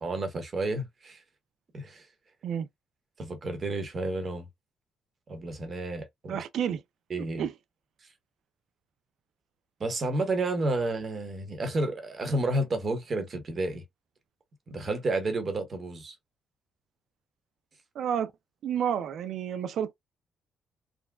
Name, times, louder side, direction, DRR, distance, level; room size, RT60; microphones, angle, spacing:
voice 1, 0.0-1.2 1.7-2.1 3.2-4.5 5.3-6.4 7.1-7.4 9.8-13.8 14.7-16.1, right 2 dB, 40° right, 1.1 m, -31 dB
voice 2, 6.3-6.8 7.4-7.5 17.9-18.3 18.6-19.9, right 8 dB, 70° right, 0.4 m, -30 dB
3.7 x 2.2 x 2.3 m
cardioid pair, 90°, 0 cm